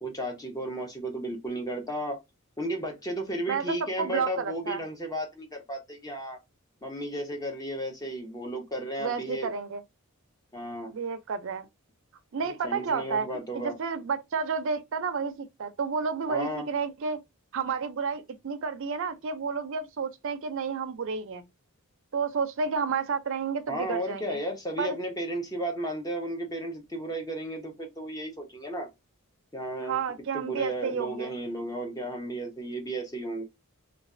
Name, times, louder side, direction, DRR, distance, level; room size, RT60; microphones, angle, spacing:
voice 1, 0.0-2.2 2.6-6.4 6.8-9.5 10.5-10.9 12.6-13.8 16.3-16.7 23.7-28.9 29.5-30.0 30.3-33.4, right 1 dB, 15° left, 0.6 m, -34 dB
voice 2, 3.5-4.8 9.0-9.8 10.9-11.7 12.3-13.3 13.5-17.2 17.5-21.4 22.1-24.4 24.8-25.0 29.8-31.3, right 5 dB, 60° right, 0.4 m, -31 dB
3.1 x 2.3 x 2.5 m
head